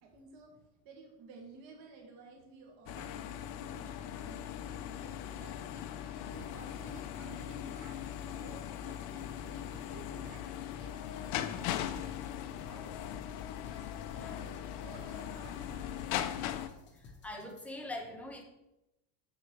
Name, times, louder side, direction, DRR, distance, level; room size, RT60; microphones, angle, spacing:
voice 1, 0.0-0.5 0.8-5.8 6.1-10.5 10.7-13.0 13.7-16.0, right 4 dB, 55° right, 0 dB, 2.0 m, -54 dB
sound 1, 2.9-16.7, left 10 dB, 55° left, 0.7 m, -40 dB
sound 2, 6.3-17.7, left 4 dB, 25° left, 0.9 m, -56 dB
voice 2, 16.9-18.4, left 1 dB, 5° left, 2 dB, 0.4 m, -43 dB
7.0 x 6.4 x 4.6 m, 0.91 s
cardioid pair, 160°, 49 cm